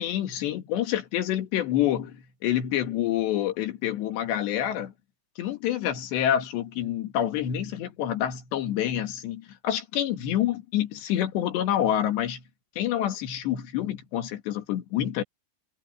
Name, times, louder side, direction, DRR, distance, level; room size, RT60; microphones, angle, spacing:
voice 1, 0.0-4.9 5.4-12.4 12.8-15.2, left 11 dB, 65° left, 4.0 m, -27 dB
omnidirectional pair, 5.7 m